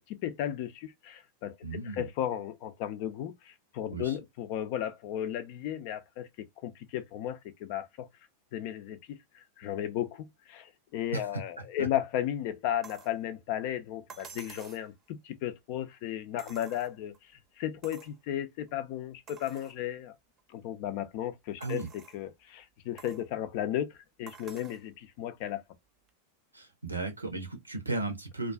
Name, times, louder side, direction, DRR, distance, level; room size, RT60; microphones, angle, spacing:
voice 1, 0.2-8.1 8.5-20.1 20.5-25.6, left 11 dB, 45° left, 0.4 m, -35 dB
voice 2, 1.6-2.1 3.9-4.2 11.1-11.4 11.8-11.9 21.6-21.9 26.5-28.5, right 3 dB, 80° right, 0.7 m, -35 dB
sound 1, 12.8-13.2 14.1-14.9 16.4-17.2 17.8-18.2 18.7-18.8 19.3-19.8 20.4-20.5 21.6-22.2 23.0-23.3 24.3-24.8 26.1-26.2, right 6 dB, 25° right, 0.6 m, -50 dB
2.4 x 2.3 x 2.2 m
figure-of-eight pair, 90°, 0 cm